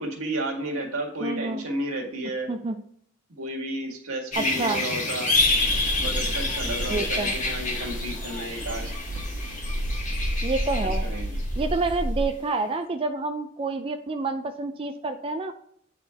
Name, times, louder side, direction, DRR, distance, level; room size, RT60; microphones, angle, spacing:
voice 1, 0.0-2.5 3.3-5.3 6.0-8.9 10.8-11.3, right 1 dB, 85° right, 1 dB, 1.8 m, -32 dB
voice 2, 1.2-1.6 2.5-2.8 4.4-4.8 6.9-7.3 10.4-11.0 11.3-15.5, right 3 dB, 25° right, 6 dB, 0.4 m, -28 dB
sound 1, 4.3-11.9 12.2-12.3, left 2 dB, 35° left, 1.5 m, -28 dB
sound 2, 5.3-12.2, equal, 60° right, 1.3 m, -31 dB
8.6 x 4.4 x 3.4 m, 0.66 s
head